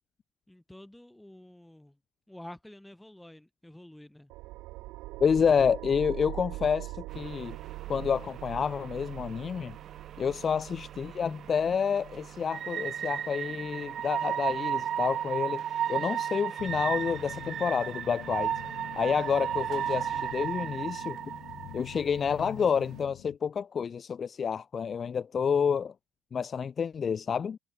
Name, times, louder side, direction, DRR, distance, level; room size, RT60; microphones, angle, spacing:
voice 1, 0.5-1.9 2.3-4.3, left 1 dB, 5° left, 1.0 m, -49 dB
sound 1, 4.3-15.4, right 19 dB, 65° right, 1.9 m, -43 dB
voice 2, 5.2-7.6 7.9-9.8 10.2-15.6 15.9-18.5 19.0-21.2 21.7-25.9 26.3-27.6, left 6 dB, 25° left, 0.5 m, -29 dB
sound 2, 7.1-23.0, right 9 dB, 35° right, 0.4 m, -35 dB
sound 3, 16.6-23.4, left 20 dB, 70° left, 4.5 m, -46 dB
cardioid pair, 165°, 0 cm